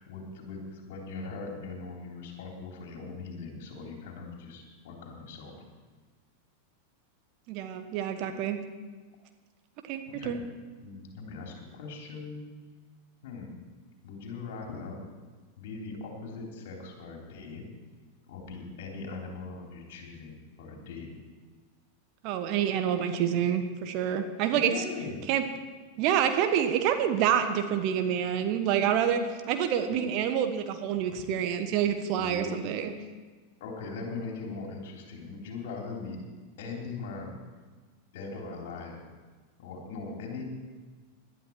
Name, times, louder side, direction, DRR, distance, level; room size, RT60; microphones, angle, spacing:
voice 1, 0.0-5.5 10.1-10.4 10.8-12.4 13.2-13.5 14.0-15.0 15.6-17.6 18.2-21.1 24.5-25.1 29.9-30.2 31.1-31.2 32.1-32.6 33.6-36.2 36.6-37.4 38.1-39.0 39.6-40.4, left 4 dB, 55° left, 1 dB, 3.5 m, -40 dB
voice 2, 7.5-8.6 9.9-10.4 22.2-24.8 25.3-25.4 26.0-32.9, right 9 dB, 40° right, 7 dB, 1.2 m, -27 dB
19.0 x 12.0 x 4.7 m, 1.4 s
figure-of-eight pair, 90°, 0 cm